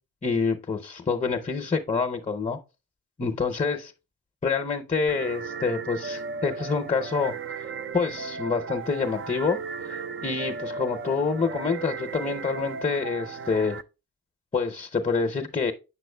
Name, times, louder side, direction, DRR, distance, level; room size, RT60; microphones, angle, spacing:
voice 1, 0.2-2.6 3.2-3.9 4.4-7.3 7.9-9.6 9.9-13.8 14.5-15.7, left 4 dB, 20° left, 0.7 m, -27 dB
sound 1, 5.1-13.8, right 5 dB, 35° right, 0.4 m, -36 dB
7.2 x 6.1 x 2.2 m
supercardioid pair, 50°, 35 cm